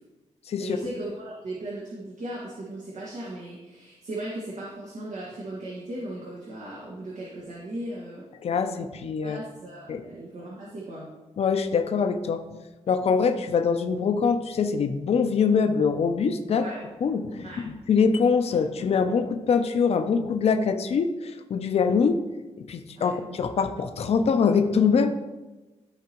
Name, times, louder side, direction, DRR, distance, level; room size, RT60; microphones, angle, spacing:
voice 1, 0.6-8.3 9.2-11.1 16.6-16.8 17.4-17.7 23.0-23.1, right 1 dB, 75° right, -5 dB, 1.7 m, -37 dB
voice 2, 8.4-9.4 9.9-10.0 11.4-12.4 12.9-16.7 17.0-22.2 22.6-25.1, left 5 dB, 60° left, 7 dB, 0.6 m, -24 dB
13.5 x 4.8 x 3.0 m, 1.2 s
wide cardioid pair, 125°, 12 cm